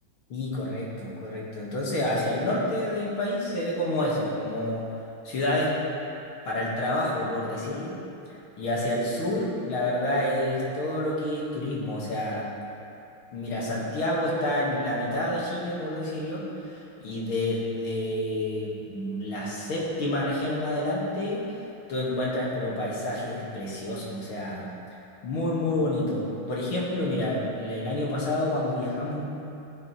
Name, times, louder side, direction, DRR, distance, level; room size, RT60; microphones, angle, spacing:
voice 1, 0.3-4.8 5.2-5.8 6.4-7.9 8.6-12.5 13.3-16.4 16.7-21.4 21.9-24.7 25.2-29.2, left 1 dB, 80° left, -5 dB, 2.6 m, -28 dB
15.0 x 7.5 x 3.2 m, 2.7 s
omnidirectional pair, 2.3 m